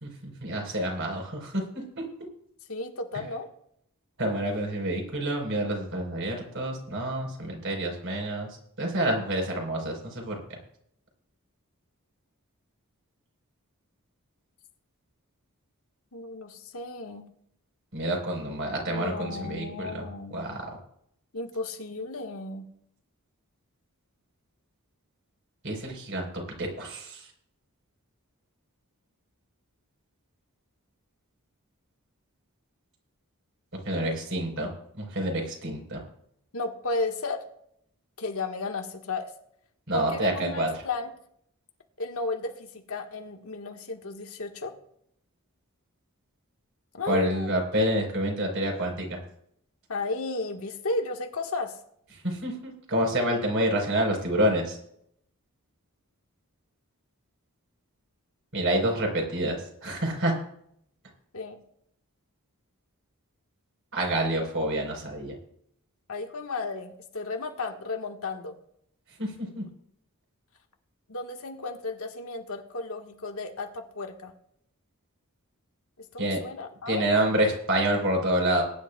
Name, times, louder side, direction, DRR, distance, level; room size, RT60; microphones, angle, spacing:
voice 1, 0.0-1.6 4.2-8.5 8.8-10.3 17.9-20.0 20.3-20.7 25.6-26.3 26.6-27.2 33.9-34.7 35.0-36.0 39.9-40.7 47.1-49.2 52.2-54.8 58.5-60.3 63.9-65.3 69.2-69.6 76.2-76.4 76.9-78.6, right 1 dB, 60° right, 2 dB, 4.2 m, -28 dB
voice 2, 2.7-3.5 16.1-17.3 18.8-20.6 21.3-22.6 36.5-37.5 38.2-39.3 39.9-41.1 42.0-44.7 46.9-47.5 49.9-51.8 61.3-61.6 66.1-68.5 71.1-74.3 76.1-77.0, left 3 dB, 75° left, 3 dB, 1.5 m, -34 dB
21.0 x 10.5 x 2.3 m, 0.70 s
head